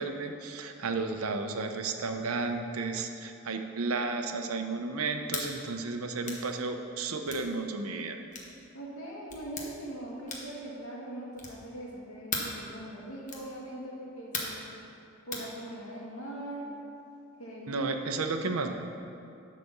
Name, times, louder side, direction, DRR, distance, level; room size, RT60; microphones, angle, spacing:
voice 1, 0.0-8.2 17.7-18.7, right 3 dB, 85° right, 6 dB, 0.7 m, -33 dB
sound 1, 5.3-5.5 6.2-6.5 7.3-7.5 8.3-8.5 9.3-9.7 10.3-10.6 11.3-11.7 12.3-12.6 13.3-13.5 14.3-14.6 15.3-15.5, left 4 dB, 35° left, 1.1 m, -36 dB
voice 2, 8.7-14.6 15.3-16.7 17.4-18.3, right 1 dB, 85° left, -4 dB, 2.0 m, -41 dB
11.0 x 4.2 x 6.8 m, 2.6 s
head